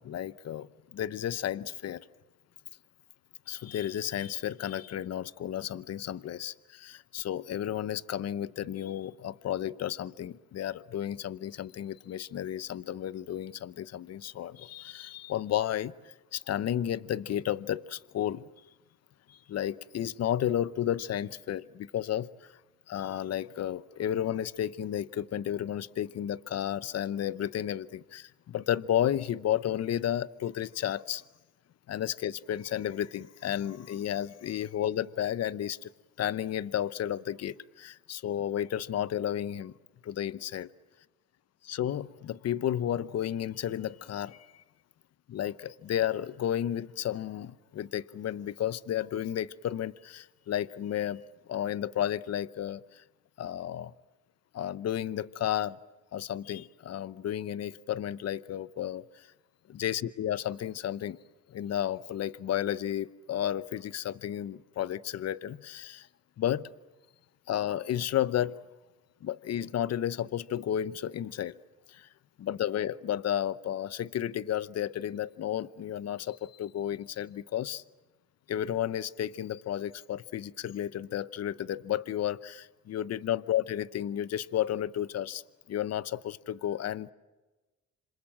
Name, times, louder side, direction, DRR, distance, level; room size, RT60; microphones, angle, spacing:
voice 1, 0.0-2.0 3.5-18.5 19.3-22.5 22.9-31.2 31.9-35.9 36.2-39.7 40.0-40.7 41.7-44.6 45.3-51.2 51.5-53.0 53.4-53.9 54.5-55.8 56.1-59.3 59.7-61.2 61.5-66.1 66.4-66.7 67.5-68.6 69.2-71.6 71.9-72.1 72.4-77.8 78.5-85.4 85.7-87.1, left 11 dB, 55° left, 0.8 m, -32 dB
27.0 x 26.5 x 7.6 m
cardioid pair, 90°, 30 cm